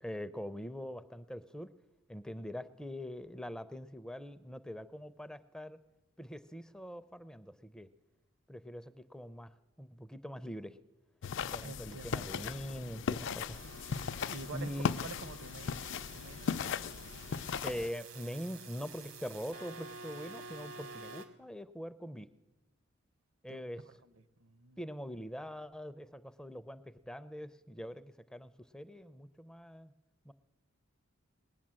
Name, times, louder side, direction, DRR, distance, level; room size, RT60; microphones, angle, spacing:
voice 1, 0.0-1.7 2.1-5.8 6.2-7.9 8.5-10.8 11.4-13.7 14.5-15.0 17.6-22.3 23.4-23.8 24.8-29.9 30.3-30.4, equal, 5° left, 12 dB, 0.4 m, -43 dB
sound 1, 11.2-17.9, left 6 dB, 65° left, 0.4 m, -37 dB
voice 2, 11.6-12.6 13.9-15.8 16.1-16.8 23.5-23.6 23.9-24.1 24.4-24.8, right 3 dB, 65° right, 14 dB, 0.8 m, -48 dB
sound 2, 13.5-21.3, right 3 dB, 85° right, 1.9 m, -50 dB
20.0 x 9.0 x 7.5 m, 1.1 s
head